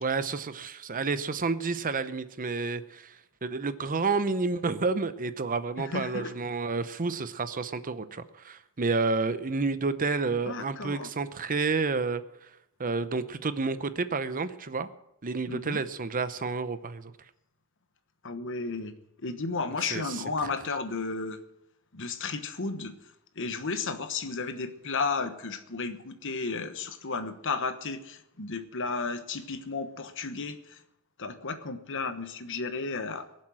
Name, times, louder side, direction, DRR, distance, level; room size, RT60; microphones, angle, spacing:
voice 1, 0.0-12.5 12.8-14.9 15.2-17.1 19.9-20.2, right 4 dB, 40° right, 12 dB, 0.7 m, -30 dB
voice 2, 5.8-6.3 10.3-11.1 15.5-15.8 18.2-21.4 21.9-23.0 23.3-30.8 31.2-33.3, left 4 dB, 60° left, 10 dB, 1.2 m, -33 dB
22.5 x 7.5 x 6.3 m, 0.84 s
head